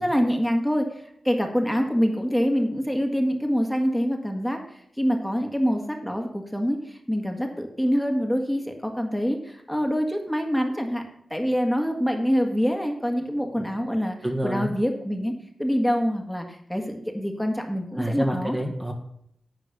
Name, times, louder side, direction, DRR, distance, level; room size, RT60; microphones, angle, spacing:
voice 1, 0.0-14.2 14.4-15.3 15.6-18.6, equal, 5° left, 3 dB, 1.9 m, -25 dB
voice 2, 14.2-14.7 17.9-18.9, right 1 dB, 15° right, 1 dB, 1.7 m, -27 dB
10.5 x 4.5 x 7.0 m, 0.70 s
cardioid pair, 45°, 0 cm